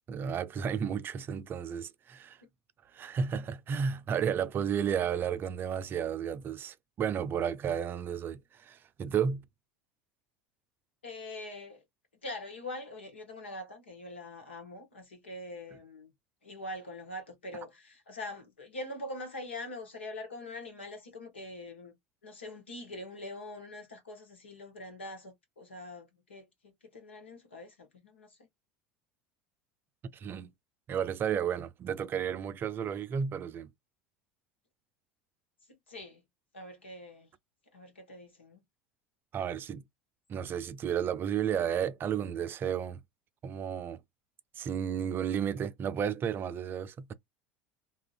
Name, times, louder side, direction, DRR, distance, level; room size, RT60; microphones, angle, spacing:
voice 1, 0.1-2.4 2.9-9.4 30.1-30.5 30.9-33.7 39.3-39.8 40.3-43.0 43.4-44.0 44.6-47.1, right 8 dB, 35° right, 0.4 m, -32 dB
voice 2, 11.0-11.8 12.2-16.1 16.4-21.9 22.2-28.4 35.7-36.2 36.5-37.3 37.7-38.6, left 1 dB, 90° left, 1.1 m, -43 dB
2.8 x 2.5 x 2.5 m
hypercardioid pair, 80°, 6 cm